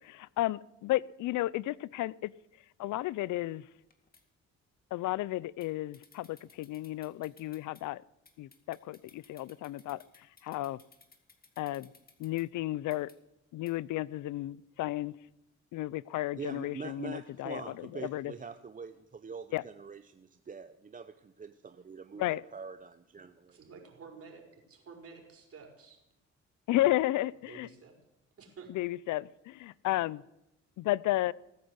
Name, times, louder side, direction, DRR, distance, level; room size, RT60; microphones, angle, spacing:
voice 1, 0.0-2.3 2.8-3.7 4.9-8.0 8.4-10.8 11.6-11.9 12.2-13.1 13.5-15.1 15.7-18.3 19.5-19.6 22.2-22.4 26.7-27.7 28.7-30.2 30.8-31.3, left 16 dB, 80° left, 23 dB, 0.5 m, -33 dB
sound 1, 3.8-4.2 5.6-5.7 5.9-7.8 8.3-12.4 12.9-13.2 13.7-13.8, left 4 dB, 30° left, 2.3 m, -60 dB
voice 2, 16.4-23.6, right 5 dB, 25° right, 11 dB, 0.7 m, -44 dB
voice 3, 23.5-26.0 27.5-27.9 28.4-28.7, right 5 dB, 50° right, 2 dB, 4.9 m, -51 dB
18.5 x 9.5 x 8.0 m, 0.86 s
cardioid pair, 90°, 30 cm